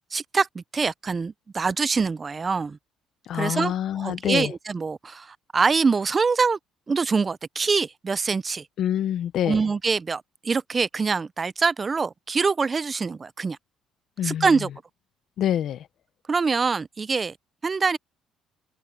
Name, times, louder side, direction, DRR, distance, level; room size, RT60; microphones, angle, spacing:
voice 1, 0.1-2.8 3.3-6.6 6.9-8.7 9.5-13.6 14.2-14.7 16.3-17.3 17.6-18.0, right 4 dB, 20° right, 0.3 m, -24 dB
voice 2, 3.3-4.5 8.8-9.6 14.2-14.6 15.4-15.9, left 10 dB, 55° left, 0.5 m, -26 dB
cardioid pair, 160°, 0 cm